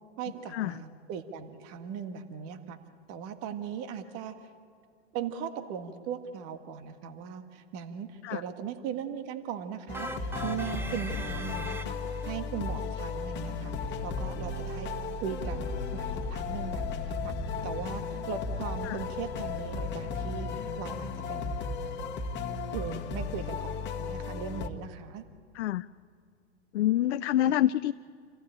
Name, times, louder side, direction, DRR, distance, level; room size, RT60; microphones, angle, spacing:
voice 1, 0.2-2.8 3.1-4.3 5.1-12.0 12.3-13.7 14.0-14.9 15.2-17.3 17.6-21.7 22.7-25.2 27.4-27.6, right 7 dB, 45° right, 9 dB, 1.8 m, -38 dB
sound 1, 9.9-24.7, left 4 dB, 30° left, 1.7 m, -35 dB
sound 2, 9.9-12.3, right 3 dB, 5° right, 0.8 m, -40 dB
voice 2, 25.5-25.9 26.7-27.9, left 13 dB, 75° left, 12 dB, 0.6 m, -26 dB
26.5 x 15.5 x 9.0 m, 2.1 s
hypercardioid pair, 110°, 34 cm